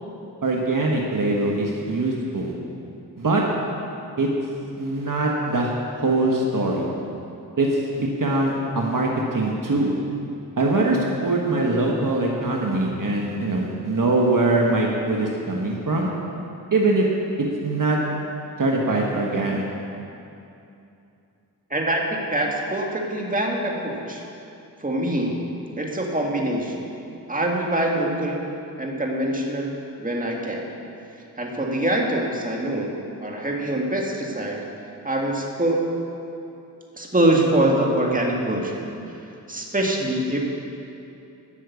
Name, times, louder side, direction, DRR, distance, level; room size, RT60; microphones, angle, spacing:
voice 1, 0.4-2.5 3.2-3.4 4.2-4.3 4.8-5.7 6.0-6.9 7.6-9.9 10.6-16.1 16.7-17.1 17.6-18.0 18.6-19.7, right 2 dB, 55° right, -1 dB, 1.6 m, -22 dB
voice 2, 21.7-24.2 24.8-25.5 25.8-26.9 27.3-28.5 28.8-30.7 31.4-34.6 35.0-35.9 37.0-38.9 39.5-40.4, right 1 dB, 20° right, -1 dB, 2.0 m, -24 dB
12.0 x 6.4 x 8.4 m, 2.7 s
cardioid pair, 50°, 40 cm